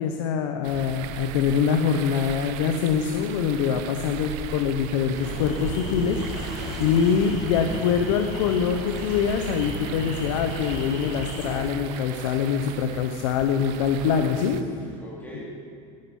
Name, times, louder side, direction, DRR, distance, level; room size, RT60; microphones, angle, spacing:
voice 1, 0.0-14.6, left 7 dB, 90° left, 5 dB, 0.8 m, -24 dB
sound 1, 0.6-14.6, right 8 dB, 70° right, 0.7 m, -38 dB
sound 2, 1.2-13.7, equal, 5° right, 3.1 m, -48 dB
sound 3, 5.2-11.6, left 1 dB, 40° left, 3.1 m, -35 dB
voice 2, 6.6-7.1 14.4-15.4, left 1 dB, 10° left, -5 dB, 3.3 m, -43 dB
11.0 x 10.5 x 5.4 m, 2.4 s
supercardioid pair, 135°, 16 cm